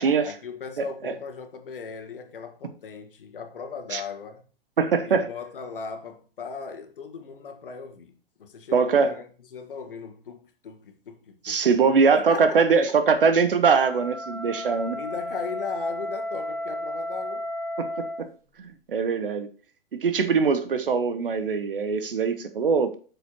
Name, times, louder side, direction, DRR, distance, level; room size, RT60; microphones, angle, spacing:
voice 1, 0.0-4.4 5.0-9.2 9.5-12.6 14.9-17.5, left 5 dB, 65° left, 1.6 m, -38 dB
voice 2, 0.8-1.2 3.9-4.0 4.8-5.3 8.7-9.1 11.4-15.0 17.8-18.3 18.6-19.5 20.0-23.0, right 5 dB, 65° right, 1.2 m, -22 dB
Wind instrument woodwind instrument, 13.6-18.3, left 1 dB, 10° right, 2.0 m, -33 dB
8.3 x 6.9 x 2.9 m
figure-of-eight pair, 105°, 30 cm